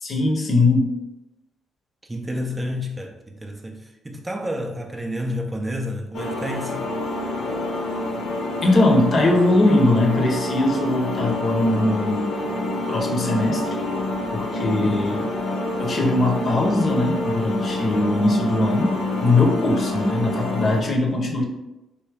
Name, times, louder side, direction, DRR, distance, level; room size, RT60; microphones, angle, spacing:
voice 1, 0.0-0.9 8.6-12.4 12.9-13.6 14.3-15.3 15.8-21.4, left 2 dB, 45° left, 2 dB, 0.7 m, -20 dB
voice 2, 2.1-6.8 14.9-15.4, equal, 15° right, 2 dB, 0.4 m, -30 dB
sound 1, 6.1-20.8, left 2 dB, 80° left, 0.9 m, -27 dB
3.4 x 2.6 x 3.3 m, 0.97 s
cardioid pair, 90°, 0 cm